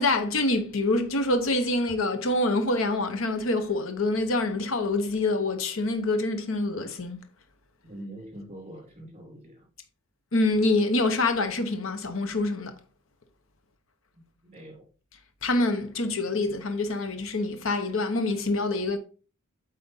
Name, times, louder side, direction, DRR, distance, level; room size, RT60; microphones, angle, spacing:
voice 1, 0.0-7.2 10.3-12.7 15.4-19.0, left 2 dB, 70° left, 0.9 m, -26 dB
voice 2, 7.8-9.6 14.5-14.8, right 1 dB, 30° right, 3.2 m, -43 dB
8.1 x 4.1 x 3.8 m
head